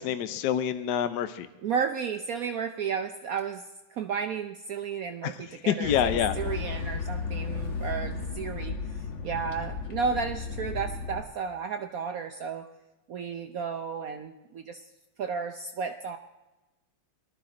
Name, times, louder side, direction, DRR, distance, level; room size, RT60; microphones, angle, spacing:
voice 1, 0.0-1.5 5.2-6.3, left 9 dB, 65° left, 11 dB, 1.2 m, -27 dB
voice 2, 1.6-12.7 13.1-14.8 15.2-16.2, right 6 dB, 75° right, 7 dB, 0.8 m, -33 dB
sound 1, 5.8-11.2, left 5 dB, 40° left, 1.4 m, -34 dB
19.5 x 12.5 x 3.8 m, 1.0 s
omnidirectional pair, 2.3 m